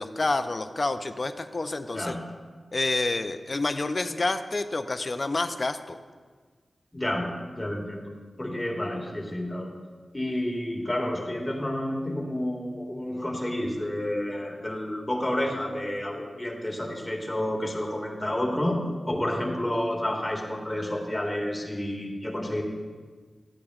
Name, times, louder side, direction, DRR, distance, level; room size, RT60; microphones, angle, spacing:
voice 1, 0.0-2.2 2.7-6.0, left 2 dB, 45° left, 9 dB, 0.5 m, -28 dB
voice 2, 6.9-7.3 7.6-8.0 8.4-9.7 10.1-22.6, left 1 dB, 20° left, -1 dB, 1.8 m, -30 dB
13.0 x 8.5 x 2.4 m, 1.5 s
cardioid pair, 50°, 0 cm